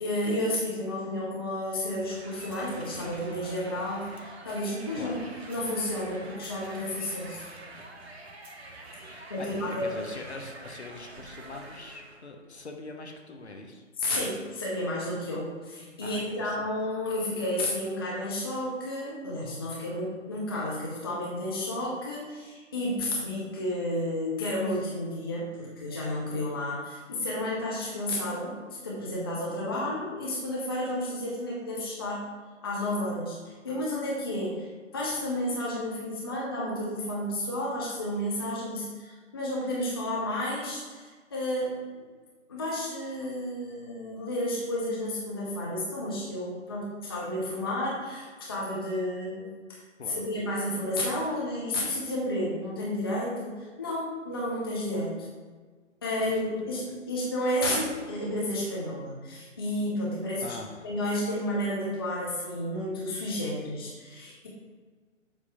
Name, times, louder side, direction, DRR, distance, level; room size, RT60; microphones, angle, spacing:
voice 1, 0.0-7.5 9.3-10.0 14.0-28.6 28.8-32.3 32.6-41.8 42.5-49.8 50.1-55.3 56.0-60.4 60.8-64.5, left 1 dB, 20° left, -5 dB, 0.7 m, -31 dB
sound 1, 1.8-12.2, right 2 dB, 55° right, 1.1 m, -46 dB
voice 2, 9.1-13.8 16.0-16.7 50.0-50.3 56.2-57.0 60.4-60.9, left 3 dB, 60° left, 3 dB, 1.0 m, -43 dB
7.3 x 3.0 x 5.4 m, 1.5 s
figure-of-eight pair, 145°, 38 cm